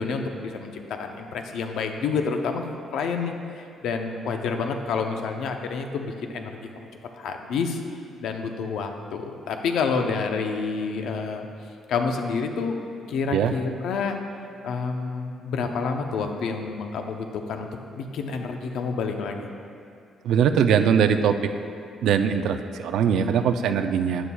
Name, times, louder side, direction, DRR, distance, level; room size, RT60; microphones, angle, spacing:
voice 1, 0.0-2.6 2.9-6.9 7.1-7.8 8.2-11.5 11.9-12.8 13.1-14.2 14.6-17.7 17.9-19.5, left 5 dB, 70° left, 4 dB, 0.7 m, -28 dB
voice 2, 20.2-21.5 22.0-24.3, right 7 dB, 70° right, 8 dB, 0.4 m, -21 dB
11.0 x 10.0 x 2.3 m, 2.4 s
cardioid pair, 175°, 0 cm